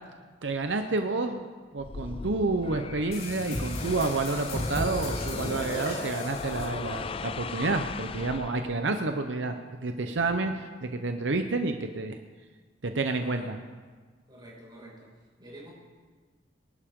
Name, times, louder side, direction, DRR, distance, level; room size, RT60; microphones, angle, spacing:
voice 1, 0.4-1.5 1.7-9.6 9.8-12.2 12.8-13.6, right 3 dB, 75° right, 6 dB, 0.8 m, -29 dB
sound 1, 1.8-9.0, left 5 dB, 30° left, 0.3 m, -38 dB
sound 2, 3.1-7.3, left 1 dB, 55° left, 3.7 m, -35 dB
voice 2, 13.2-13.6 14.3-15.7, right 1 dB, 25° right, -5 dB, 5.7 m, -48 dB
24.0 x 11.5 x 3.7 m, 1.4 s
head